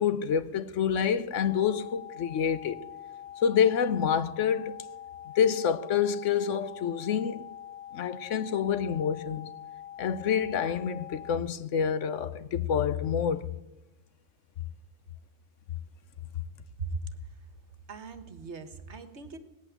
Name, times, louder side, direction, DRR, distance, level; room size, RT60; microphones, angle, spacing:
voice 1, 0.0-2.8 3.4-4.8 5.4-7.4 7.9-9.5 10.0-13.5, left 7 dB, 65° left, 1.1 m, -27 dB
sound 1, 1.4-11.4, left 10 dB, 90° left, 1.4 m, -44 dB
voice 2, 16.5-17.4 17.9-19.4, right 3 dB, 55° right, 1.5 m, -39 dB
18.0 x 8.5 x 9.1 m
omnidirectional pair, 1.4 m